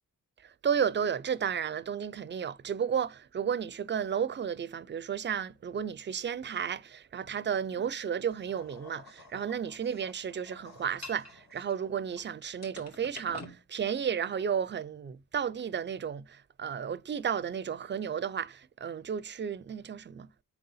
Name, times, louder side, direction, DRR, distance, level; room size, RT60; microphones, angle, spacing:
voice 1, 0.4-20.3, right 7 dB, 35° right, 0.4 m, -33 dB
sound 1, 8.5-12.2 12.6-13.6, left 3 dB, 55° left, 1.8 m, -48 dB
4.5 x 3.9 x 5.5 m
cardioid pair, 85°, 32 cm